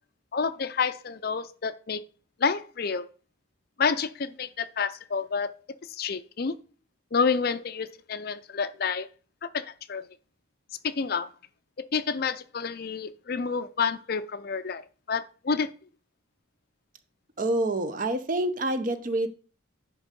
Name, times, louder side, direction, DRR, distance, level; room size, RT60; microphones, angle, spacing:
voice 1, 0.3-2.0 2.4-3.1 3.8-5.5 5.9-6.6 7.1-9.1 9.4-10.0 10.8-11.3 11.8-14.8 15.1-15.7, left 5 dB, 45° left, 13 dB, 0.5 m, -29 dB
voice 2, 17.4-19.3, right 1 dB, 40° right, 10 dB, 0.7 m, -27 dB
10.5 x 3.6 x 5.2 m, 0.38 s
head